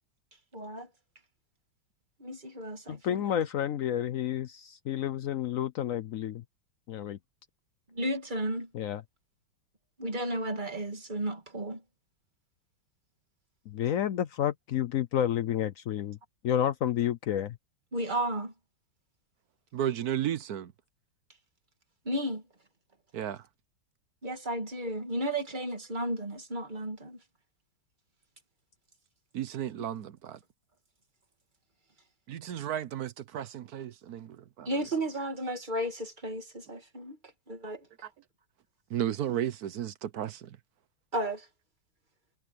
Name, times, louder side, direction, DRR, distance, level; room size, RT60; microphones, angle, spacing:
voice 1, 0.5-0.9 2.2-3.3 7.9-8.7 10.0-11.8 17.9-18.5 22.1-22.4 24.2-27.2 34.7-37.2 37.5-37.9 41.1-41.5, right 1 dB, 25° right, 2.1 m, -33 dB
voice 2, 2.9-6.4 6.9-7.2 8.7-9.0 13.7-16.2 16.4-17.6, left 10 dB, 85° left, 0.7 m, -30 dB
voice 3, 19.7-20.7 23.1-23.5 29.3-30.4 32.3-34.7 38.0-38.1 38.9-40.6, right 10 dB, 60° right, 1.0 m, -34 dB
omnidirectional pair, 2.3 m